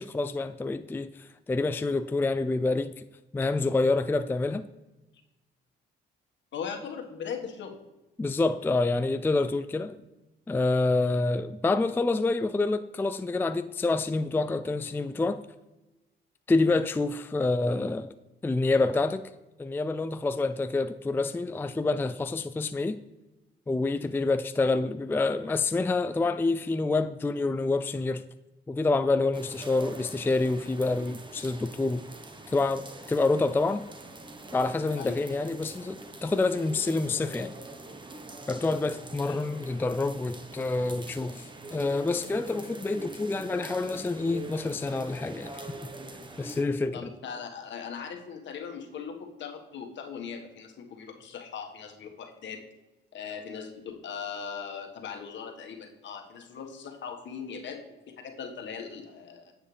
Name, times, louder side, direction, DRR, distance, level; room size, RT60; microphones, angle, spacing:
voice 1, 0.0-2.9 3.3-4.6 8.2-10.0 10.5-15.4 16.5-18.1 18.4-19.3 19.6-23.0 23.7-28.2 28.7-32.0 32.5-33.8 34.5-37.5 38.5-45.7 46.4-47.1, left 3 dB, 10° left, 0.4 m, -27 dB
voice 2, 6.5-7.8 35.0-35.2 39.2-39.4 46.9-52.6 53.1-57.8 58.1-59.5, left 6 dB, 65° left, 1.6 m, -39 dB
sound 1, 29.3-46.6, right 2 dB, 25° right, 1.1 m, -44 dB
9.5 x 7.7 x 3.3 m
cardioid pair, 90°, 20 cm